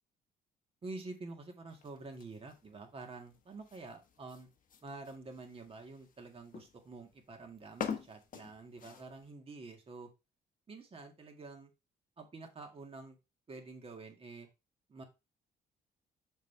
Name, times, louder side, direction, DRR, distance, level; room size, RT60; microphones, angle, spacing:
voice 1, 0.8-4.5 4.8-10.1 10.7-11.7 12.2-13.2 13.5-14.5 14.9-15.0, right 3 dB, 35° right, 4 dB, 1.8 m, -48 dB
sound 1, 1.7-9.3, left 7 dB, 50° left, 1.2 m, -47 dB
6.5 x 5.6 x 3.3 m, 0.26 s
cardioid pair, 110°, 17 cm